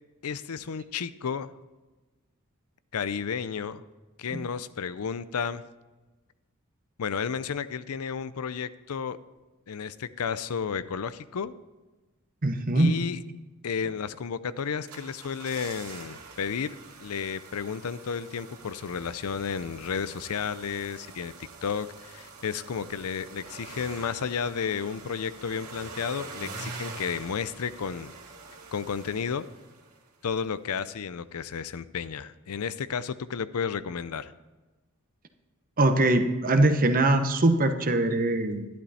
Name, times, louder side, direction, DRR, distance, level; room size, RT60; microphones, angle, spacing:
voice 1, 0.2-1.5 2.9-3.8 4.2-5.6 7.0-9.2 9.7-11.5 12.8-13.2 13.6-21.3 21.6-28.1 28.7-29.5 30.2-34.3, left 6 dB, 80° left, 15 dB, 0.5 m, -32 dB
voice 2, 12.4-12.9 35.8-38.7, right 2 dB, 40° right, 7 dB, 1.0 m, -22 dB
sound 1, 14.6-30.1 30.4-30.5, right 4 dB, 80° right, 2.5 m, -45 dB
12.0 x 11.0 x 4.2 m, 1.2 s
head